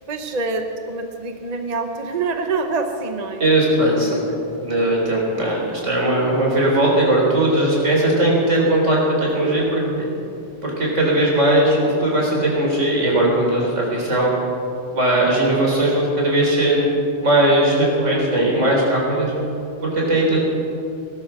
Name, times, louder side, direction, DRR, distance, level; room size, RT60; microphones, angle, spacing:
voice 1, 0.1-3.4 4.3-4.4, right 3 dB, 35° right, 5 dB, 1.0 m, -26 dB
voice 2, 3.4-4.2 4.6-10.1 10.6-14.3 14.9-16.9 17.2-19.3 19.8-20.4, right 1 dB, 80° right, -2 dB, 4.2 m, -18 dB
19.0 x 12.5 x 5.9 m, 2.7 s
omnidirectional pair, 1.3 m